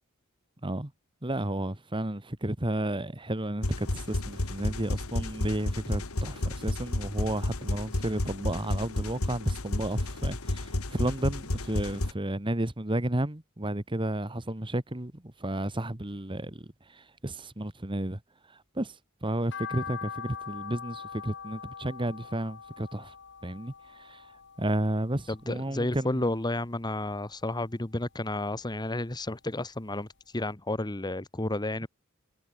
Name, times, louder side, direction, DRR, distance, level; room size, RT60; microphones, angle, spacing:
voice 1, 1.2-18.2 18.8-19.0 19.2-23.1 23.4-24.2 24.6-26.3, right 1 dB, 20° right, 1.6 m, -32 dB
sound 1, 3.6-12.1, left 1 dB, 70° left, 2.0 m, -31 dB
sound 2, 19.5-25.8 26.2-27.3 27.7-29.1 29.5-29.6 30.0-30.1 30.4-30.5, left 6 dB, 55° left, 2.0 m, -43 dB
voice 2, 25.3-30.1 30.3-31.9, left 2 dB, 20° left, 1.2 m, -31 dB
head